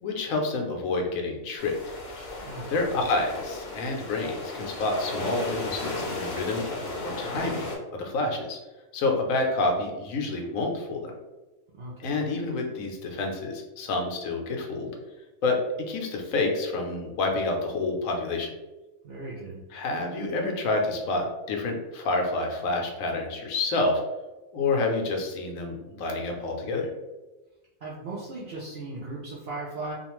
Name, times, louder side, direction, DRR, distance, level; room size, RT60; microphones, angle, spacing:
voice 1, 0.0-1.8 2.7-6.7 7.0-8.6 8.9-11.1 12.0-14.9 15.4-15.6 15.9-18.5 19.7-24.0 24.5-26.9, left 3 dB, 80° left, 2 dB, 1.0 m, -28 dB
sound 1, 1.6-7.8, left 2 dB, 60° left, 0.8 m, -35 dB
voice 2, 2.4-2.8 11.7-12.3 19.0-19.6 27.8-29.9, right 2 dB, 60° right, -5 dB, 0.6 m, -37 dB
2.5 x 2.2 x 2.9 m, 1.1 s
omnidirectional pair, 1.4 m